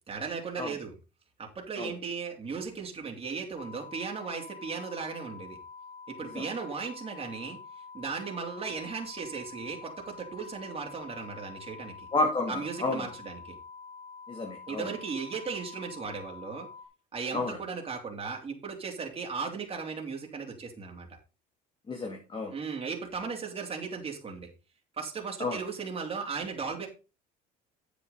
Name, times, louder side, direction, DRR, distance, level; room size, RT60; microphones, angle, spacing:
voice 1, 0.1-0.9 1.4-5.6 6.1-7.6 7.9-12.1 12.5-13.6 14.7-16.7 17.1-21.1 22.5-24.5 25.0-26.9, right 5 dB, 30° right, 1 dB, 3.1 m, -36 dB
sound 1, 3.6-16.9, left 5 dB, 55° left, 2.6 m, -47 dB
voice 2, 12.1-13.1 14.3-14.9 17.3-17.6 21.9-22.5 25.4-25.6, left 2 dB, 30° left, 2 dB, 2.3 m, -31 dB
8.9 x 8.4 x 3.9 m, 0.30 s
supercardioid pair, 95°, 18 cm